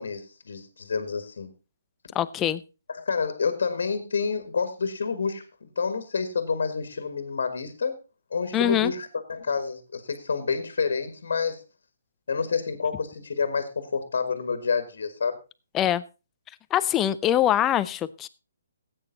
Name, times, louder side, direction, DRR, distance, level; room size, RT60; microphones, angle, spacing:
voice 1, 0.0-1.5 2.9-7.9 8.3-11.6 12.3-15.4, left 5 dB, 70° left, 9 dB, 1.8 m, -28 dB
voice 2, 2.1-2.6 8.5-8.9 15.7-16.0 16.7-18.3, left 11 dB, 20° left, 15 dB, 0.6 m, -23 dB
15.5 x 8.9 x 3.9 m, 0.30 s
hypercardioid pair, 140°, 0 cm